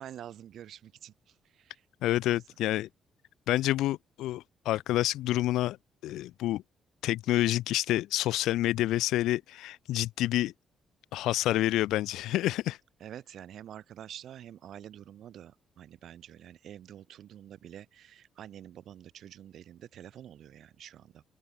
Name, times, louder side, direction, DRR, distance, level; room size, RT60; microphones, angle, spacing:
voice 1, 0.0-1.8 2.2-2.4 13.0-21.2, right 10 dB, 70° right, 2.9 m, -47 dB
voice 2, 2.0-2.9 3.5-5.8 6.0-6.6 7.0-10.5 11.1-12.8, left 15 dB, 90° left, 0.4 m, -28 dB
open air
cardioid pair, 90°, 0 cm